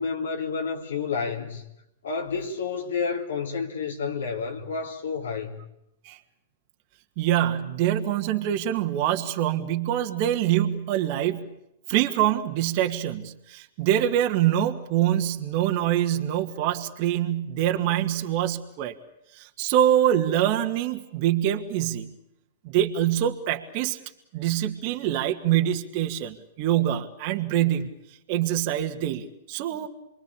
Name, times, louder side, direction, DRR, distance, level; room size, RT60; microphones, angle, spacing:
voice 1, 0.0-1.6 2.0-5.6, left 5 dB, 80° left, 3.7 m, -30 dB
voice 2, 7.2-11.6 11.9-18.9 19.3-22.1 22.6-24.0 24.3-27.9 28.3-29.9, right 11 dB, 50° right, 2.2 m, -25 dB
28.0 x 23.0 x 8.6 m
hypercardioid pair, 120°, 0 cm